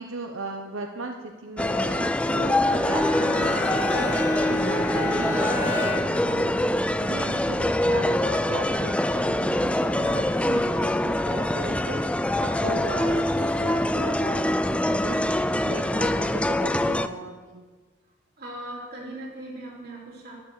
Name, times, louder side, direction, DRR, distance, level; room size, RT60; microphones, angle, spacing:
voice 1, 0.0-17.6, right 2 dB, 80° right, 4 dB, 0.9 m, -37 dB
sound 1, 1.6-17.1, left 1 dB, 5° left, 0.3 m, -24 dB
Bowed string instrument, 2.3-6.4, left 3 dB, 35° left, 1.5 m, -32 dB
voice 2, 18.4-20.3, right 1 dB, 50° right, -3 dB, 3.8 m, -38 dB
12.5 x 12.0 x 6.5 m, 1.4 s
head